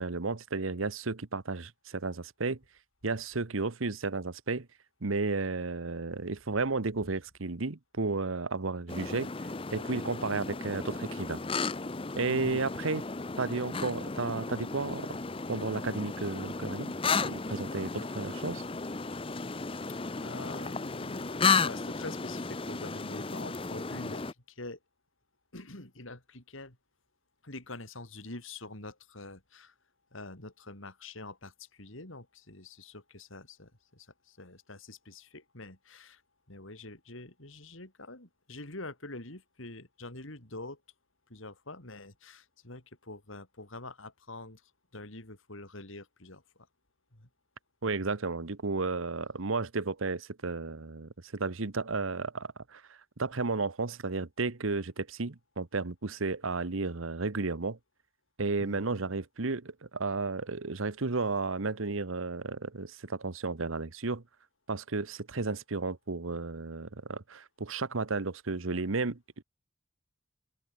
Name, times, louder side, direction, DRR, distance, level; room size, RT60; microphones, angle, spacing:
voice 1, 0.0-2.6 3.0-4.7 5.0-9.3 9.7-11.4 12.2-13.0 13.4-15.2 15.5-16.9 17.2-18.6 47.8-57.8 58.4-64.2 64.7-69.4, right 3 dB, 80° right, 1.1 m, -33 dB
sound 1, 8.9-24.3, left 4 dB, 25° left, 0.7 m, -34 dB
voice 2, 12.3-12.6 20.1-24.8 25.5-26.8 27.4-29.7 30.1-36.2 36.5-40.8 41.3-46.7 47.1-47.3 58.6-58.8, left 2 dB, 75° left, 4.2 m, -46 dB
head